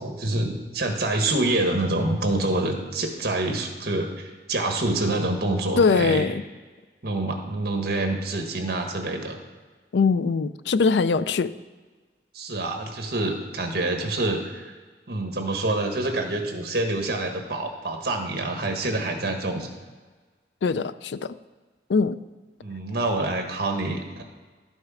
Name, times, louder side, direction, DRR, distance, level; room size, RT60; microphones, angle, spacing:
voice 1, 0.0-6.3 7.0-9.4 12.3-14.7 15.1-19.7 22.6-24.2, right 2 dB, 60° right, 4 dB, 1.4 m, -26 dB
voice 2, 5.8-6.4 9.9-11.5 20.6-21.4 21.9-22.2, left 4 dB, 75° left, 15 dB, 0.4 m, -22 dB
12.0 x 6.4 x 4.9 m, 1.4 s
head